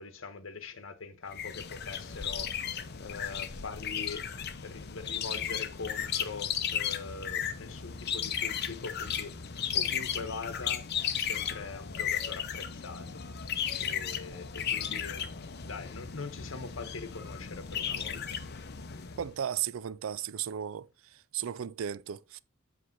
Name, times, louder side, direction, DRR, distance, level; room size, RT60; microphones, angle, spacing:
voice 1, 0.0-4.2 4.6-13.5 13.8-15.3 15.6-18.4 18.9-19.0, left 4 dB, 75° left, 1.0 m, -43 dB
sound 1, 1.3-19.3, left 8 dB, 55° left, 0.7 m, -35 dB
voice 2, 19.2-20.9 21.3-22.4, right 9 dB, 85° right, 0.4 m, -35 dB
7.7 x 3.3 x 5.9 m
head